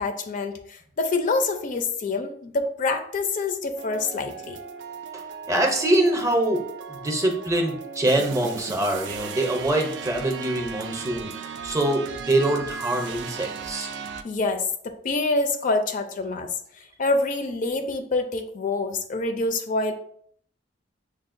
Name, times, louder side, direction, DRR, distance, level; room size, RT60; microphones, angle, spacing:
voice 1, 0.0-4.6 14.2-16.5 17.0-19.9, left 3 dB, 45° left, 7 dB, 0.4 m, -26 dB
sound 1, 3.8-14.2, right 6 dB, 75° right, 0.3 m, -37 dB
voice 2, 5.5-6.6 6.9-13.9, right 1 dB, 20° right, 2 dB, 0.6 m, -24 dB
6.2 x 2.1 x 2.5 m, 0.63 s
head